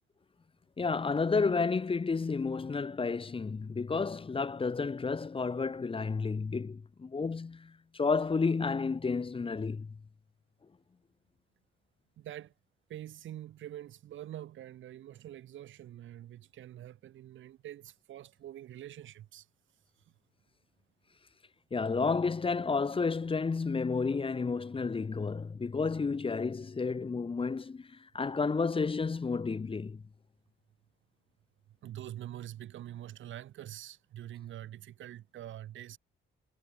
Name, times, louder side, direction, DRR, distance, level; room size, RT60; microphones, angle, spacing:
voice 1, 0.8-9.9 21.7-27.9 28.1-30.0, left 4 dB, 25° left, 1.2 m, -31 dB
voice 2, 12.2-12.5 12.9-19.5 31.8-36.0, right 12 dB, 75° right, 2.7 m, -45 dB
cardioid pair, 90°, 20 cm